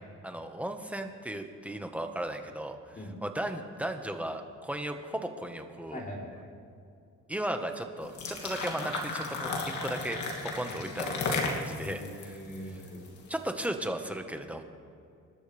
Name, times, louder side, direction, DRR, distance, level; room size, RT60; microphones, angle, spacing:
voice 1, 0.2-2.8 3.2-6.0 7.3-9.5 9.8-12.4 13.3-14.6, right 1 dB, 5° right, 5 dB, 1.5 m, -36 dB
voice 2, 5.9-6.5 10.6-10.8 11.8-13.0, equal, 30° left, -3 dB, 4.0 m, -42 dB
sound 1, 8.0-13.3, left 3 dB, 75° left, 2.7 m, -34 dB
27.0 x 12.5 x 3.5 m, 2.5 s
cardioid pair, 90°, 30 cm